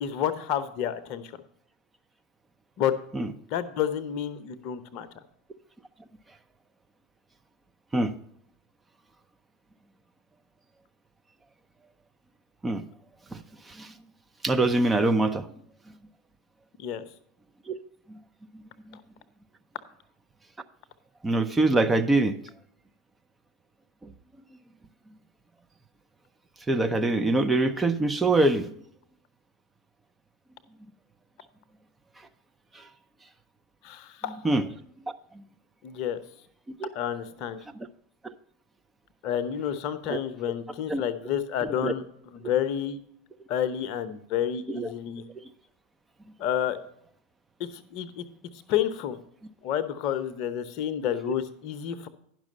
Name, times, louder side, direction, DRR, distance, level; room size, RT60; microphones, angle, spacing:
voice 1, 0.0-1.3 2.8-2.9 3.5-5.1 16.8-17.0 33.8-34.3 35.8-36.2 36.9-37.6 39.2-42.0 42.3-43.0 43.5-45.2 46.4-46.8 47.6-48.2 48.7-49.2 49.6-52.1, left 10 dB, 50° left, 12 dB, 0.8 m, -29 dB
voice 2, 13.3-13.9 14.4-15.5 17.7-17.8 18.1-18.2 18.5-19.0 21.2-22.4 24.0-24.1 26.7-28.7 32.7-32.9 34.4-34.7 35.3-35.4 36.7-36.9 37.7-37.9 38.2-38.3 40.1-40.2 40.9-41.0 41.6-41.9 44.7-44.9, right 2 dB, 15° right, 7 dB, 0.6 m, -25 dB
10.5 x 6.1 x 5.3 m, 0.70 s
figure-of-eight pair, 80°, 0 cm